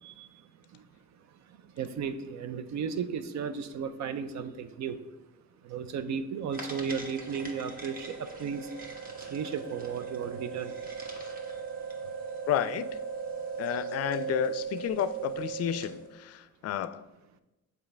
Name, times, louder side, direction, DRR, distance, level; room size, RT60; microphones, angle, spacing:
voice 1, 1.8-5.0 5.6-8.7 9.3-10.7, right 6 dB, 65° right, 11 dB, 0.6 m, -34 dB
sound 1, 6.5-16.0, right 6 dB, 30° right, 1.3 m, -38 dB
voice 2, 12.5-12.9 13.6-17.0, left 10 dB, 55° left, 14 dB, 0.4 m, -31 dB
7.1 x 4.5 x 3.3 m, 1.0 s
cardioid pair, 90°, 30 cm